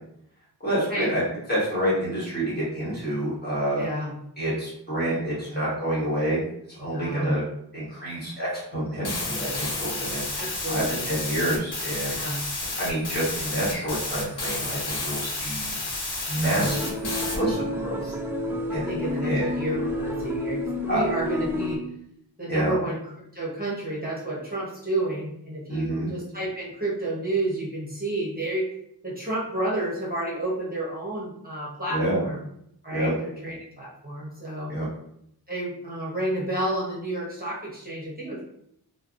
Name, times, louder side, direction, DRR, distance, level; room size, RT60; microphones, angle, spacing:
voice 1, 0.6-1.2 1.5-3.8 4.4-6.4 6.7-7.4 7.7-10.2 10.7-12.2 12.8-15.7 16.3-18.1 18.7-18.9 19.2-19.5 20.9-21.0 22.5-22.7 25.7-26.1 31.9-32.2 32.9-33.1 34.7-34.9, right 1 dB, 25° left, -9 dB, 1.3 m, -28 dB
voice 2, 3.7-4.1 6.8-7.3 10.4-11.1 12.1-12.4 16.3-16.7 18.7-21.8 22.4-23.0 23.3-28.7 29.0-32.4 32.8-34.7 35.5-38.4, right 1 dB, 20° right, -6 dB, 0.9 m, -30 dB
sound 1, 9.0-17.4, left 2 dB, 70° left, 0.8 m, -31 dB
sound 2, 16.6-21.8, left 1 dB, 5° right, 0.3 m, -30 dB
3.2 x 2.0 x 2.5 m, 0.74 s
wide cardioid pair, 60°, 41 cm